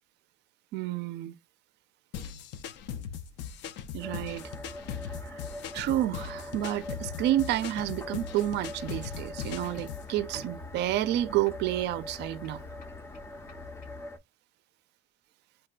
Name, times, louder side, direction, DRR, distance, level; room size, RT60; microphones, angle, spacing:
voice 1, 0.7-1.3 3.9-4.4 5.2-5.4 5.7-12.6, right 13 dB, 70° right, 0.4 m, -30 dB
sound 1, 2.1-10.1, left 8 dB, 75° left, 0.4 m, -39 dB
sound 2, 4.0-14.2, left 1 dB, 15° left, 0.4 m, -43 dB
sound 3, 8.3-14.0, left 5 dB, 50° left, 0.8 m, -49 dB
4.1 x 2.2 x 2.3 m
cardioid pair, 130°, 18 cm